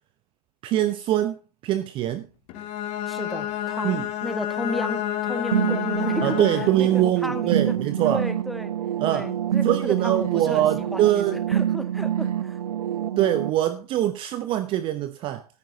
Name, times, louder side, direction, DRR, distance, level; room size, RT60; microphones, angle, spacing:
voice 1, 0.6-2.3 3.8-4.1 6.2-8.2 9.0-9.3 9.6-11.4 13.2-15.5, right 13 dB, 25° right, 0.9 m, -23 dB
Bowed string instrument, 2.5-7.0, left 12 dB, 30° left, 2.5 m, -29 dB
voice 2, 3.1-6.4 6.6-7.8 8.0-8.7 9.0-11.2 11.5-12.6, equal, ahead, 1.7 m, -33 dB
sound 1, 5.5-13.5, right 10 dB, 65° right, 0.6 m, -27 dB
14.0 x 13.5 x 2.8 m
hypercardioid pair, 120°, 20 cm